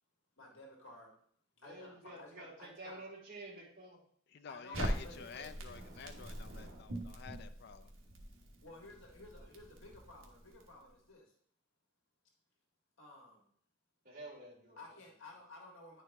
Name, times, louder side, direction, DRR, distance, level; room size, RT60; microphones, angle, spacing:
voice 1, 0.4-1.1 1.6-3.1 4.5-5.5 8.6-11.3 13.0-13.5 14.7-16.0, left 2 dB, 75° left, 0 dB, 1.6 m, -54 dB
voice 2, 1.6-4.0 14.0-14.8, right 2 dB, 40° right, -6 dB, 2.7 m, -50 dB
voice 3, 4.3-7.9, left 6 dB, 55° left, 10 dB, 0.4 m, -49 dB
Crackle, 4.7-10.9, right 1 dB, 70° right, 1.1 m, -43 dB
9.7 x 4.7 x 3.5 m, 0.62 s
head